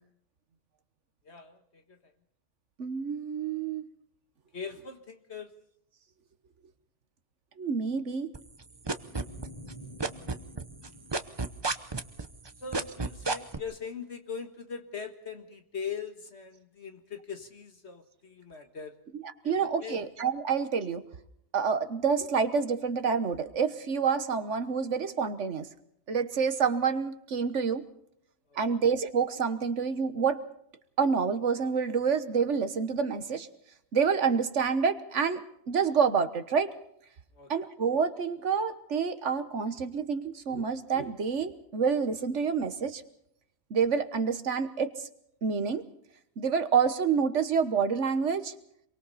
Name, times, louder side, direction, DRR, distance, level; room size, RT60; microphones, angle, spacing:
voice 1, 1.3-2.0 4.5-5.5 12.6-18.9 19.4-20.0 37.3-37.5, left 6 dB, 65° left, 6 dB, 1.9 m, -41 dB
voice 2, 2.8-3.8 7.6-8.3 19.2-21.0 21.5-25.7 26.1-27.8 28.5-30.4 31.0-33.5 33.9-36.8 37.5-43.0 43.7-45.1 45.4-45.9 46.4-48.5, right 6 dB, 80° right, 10 dB, 1.6 m, -28 dB
sound 1, 8.3-9.7 10.0-13.6, right 3 dB, 25° right, 0.9 m, -30 dB
sound 2, 9.0-12.2, equal, 25° left, 2.5 m, -49 dB
27.5 x 23.5 x 4.2 m, 0.72 s
omnidirectional pair, 1.2 m